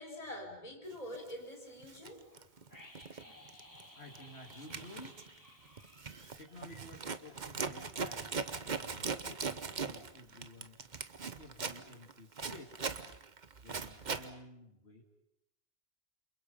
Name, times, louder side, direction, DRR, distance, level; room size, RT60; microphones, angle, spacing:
voice 1, 0.0-2.4 3.2-3.4, left 1 dB, 35° left, 1 dB, 5.0 m, -46 dB
Zipper (clothing), 1.1-1.3 1.8-3.2 3.5-3.8 4.1-14.3, right 5 dB, 45° right, 1.2 m, -40 dB
sound 1, 2.7-7.5 7.8-7.9, left 1 dB, 20° left, 4.0 m, -57 dB
voice 2, 4.0-5.2 6.4-10.8 11.4-12.8 13.6-15.0, left 1 dB, 90° left, 2 dB, 2.8 m, -53 dB
28.5 x 28.0 x 5.5 m, 0.82 s
omnidirectional pair, 1.1 m